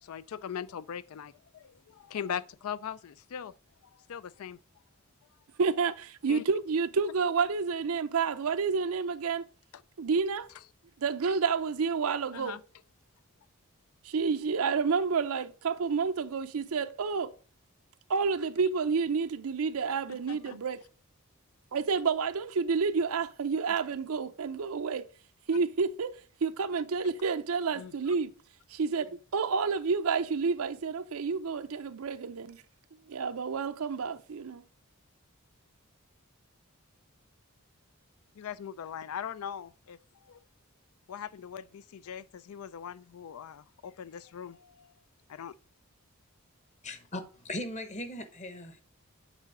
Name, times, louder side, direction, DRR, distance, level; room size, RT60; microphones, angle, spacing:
voice 1, 0.0-3.5 3.9-4.6 6.3-6.4 12.3-12.6 20.1-20.6 27.7-28.1 38.3-40.4 41.1-44.9 45.3-45.5, left 8 dB, 75° left, 0.4 m, -40 dB
voice 2, 5.6-9.4 10.0-10.5 11.0-12.6 14.0-17.3 18.1-20.8 21.7-25.0 25.5-26.1 26.4-28.3 28.7-32.6 33.1-34.6, right 5 dB, 70° right, 0.5 m, -29 dB
voice 3, 46.8-48.8, left 1 dB, 30° left, 1.0 m, -39 dB
8.2 x 4.0 x 4.8 m
head